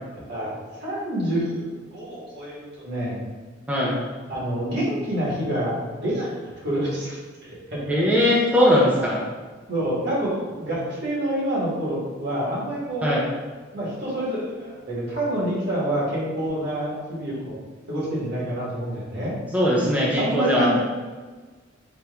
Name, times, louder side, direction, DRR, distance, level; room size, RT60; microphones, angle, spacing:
voice 1, 0.8-3.2 4.3-7.8 9.7-13.1 13.7-17.6 17.9-19.4 20.2-20.8, right 1 dB, 60° right, -6 dB, 1.4 m, -27 dB
voice 2, 7.9-9.2 13.0-13.2 19.5-20.8, equal, 10° right, -5 dB, 0.5 m, -20 dB
4.2 x 2.4 x 3.3 m, 1.4 s
head